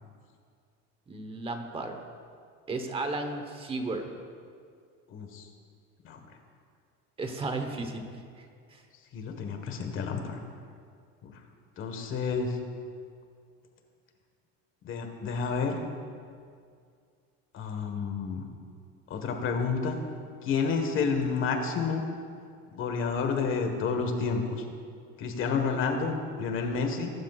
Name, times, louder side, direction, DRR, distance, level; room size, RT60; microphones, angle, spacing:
voice 1, 1.1-2.0 2.7-4.1 7.2-8.8, right 2 dB, 20° right, 6 dB, 1.0 m, -34 dB
voice 2, 5.1-5.5 6.0-6.2 9.1-10.4 11.2-11.3 11.8-12.6 14.8-15.8 17.5-18.4 19.1-20.0 20.4-22.0 22.7-24.6 25.2-27.1, left 5 dB, 40° left, 4 dB, 1.5 m, -30 dB
21.0 x 11.5 x 2.5 m, 2.2 s
cardioid pair, 155°, 30 cm